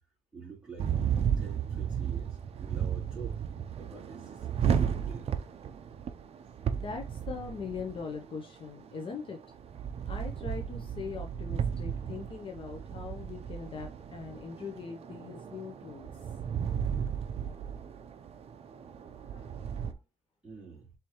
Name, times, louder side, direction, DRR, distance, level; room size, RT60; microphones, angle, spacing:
voice 1, 0.3-3.4 3.8-5.3 20.4-20.9, right 5 dB, 5° right, 3.0 m, -48 dB
sound 1, 0.8-19.9, right 8 dB, 50° right, 0.5 m, -34 dB
voice 2, 6.8-9.4 10.1-16.1 19.2-19.5 19.7-20.0, left 5 dB, 40° left, 0.7 m, -41 dB
4.6 x 3.3 x 3.0 m
cardioid pair, 155°, 14 cm